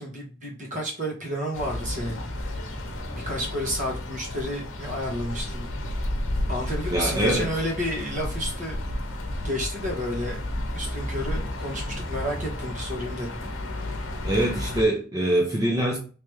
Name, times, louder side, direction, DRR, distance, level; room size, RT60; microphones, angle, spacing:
voice 1, 0.0-2.2 3.1-5.8 6.5-8.8 9.4-10.4 10.7-13.4, equal, 40° right, -2 dB, 1.4 m, -31 dB
sound 1, 1.5-14.8, left 1 dB, 65° left, 0.9 m, -32 dB
voice 2, 6.9-7.5 14.2-16.0, right 1 dB, 15° right, -2 dB, 0.6 m, -23 dB
3.4 x 3.0 x 3.1 m, 0.37 s
head